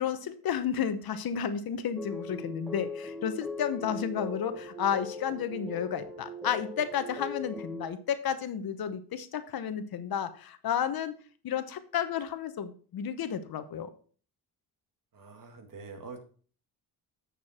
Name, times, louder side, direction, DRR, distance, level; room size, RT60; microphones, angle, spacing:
voice 1, 0.0-11.1 11.4-13.9, left 8 dB, 65° left, 11 dB, 1.1 m, -32 dB
sound 1, 2.0-7.9, left 2 dB, ahead, 1.9 m, -40 dB
voice 2, 15.1-16.2, right 4 dB, 55° right, 5 dB, 2.2 m, -45 dB
8.9 x 6.8 x 4.3 m, 0.42 s
cardioid pair, 100°, 40 cm